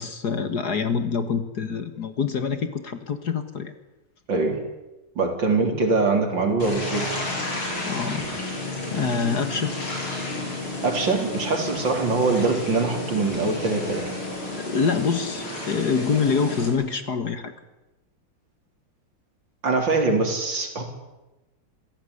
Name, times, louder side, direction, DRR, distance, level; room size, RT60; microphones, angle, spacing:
voice 1, 0.0-3.7 7.9-8.3 8.9-9.7 14.6-17.5, left 5 dB, 50° left, 10 dB, 2.0 m, -25 dB
voice 2, 4.3-4.6 5.2-7.2 10.8-14.2 19.6-20.8, right 3 dB, 60° right, 5 dB, 4.6 m, -23 dB
sound 1, 6.6-16.7, left 2 dB, 80° left, 7.4 m, -31 dB
27.5 x 16.5 x 9.9 m, 1.1 s
omnidirectional pair, 2.3 m